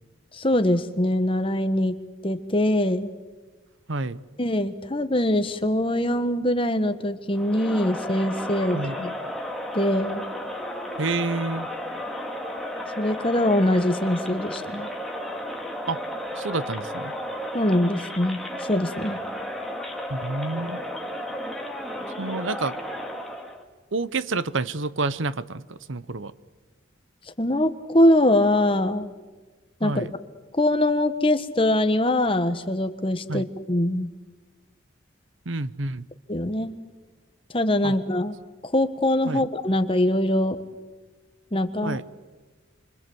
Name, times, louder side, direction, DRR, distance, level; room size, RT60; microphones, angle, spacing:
voice 1, 0.3-1.9 2.2-3.1 4.4-9.1 9.7-10.2 13.0-14.9 17.5-19.2 27.4-29.1 29.8-30.1 30.6-34.1 36.3-36.7 37.5-38.4 38.6-40.6 41.5-42.0, left 1 dB, 25° left, 9 dB, 1.3 m, -23 dB
voice 2, 3.9-4.2 8.7-9.1 11.0-11.7 15.9-16.0 16.4-17.1 20.1-20.8 22.2-22.8 23.9-26.3 29.8-30.1 33.3-33.5 35.5-36.1 37.8-37.9 39.3-39.5 41.8-42.0, right 3 dB, 70° right, 16 dB, 0.9 m, -29 dB
Crowd, 7.3-23.6, equal, ahead, 2.4 m, -33 dB
28.5 x 25.0 x 7.9 m, 1.3 s
head